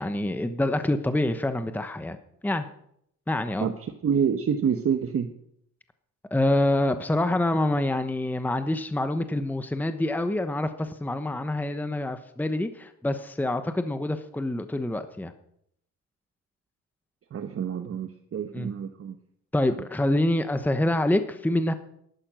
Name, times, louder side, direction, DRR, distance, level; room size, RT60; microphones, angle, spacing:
voice 1, 0.0-2.2 2.4-2.7 3.3-3.7 6.3-15.3 18.5-18.7 19.5-21.7, left 1 dB, 5° left, 9 dB, 1.0 m, -26 dB
voice 2, 4.0-5.3 17.3-19.1, right 7 dB, 50° right, 7 dB, 1.2 m, -27 dB
13.5 x 12.0 x 6.3 m, 0.72 s
cardioid pair, 90°, 30 cm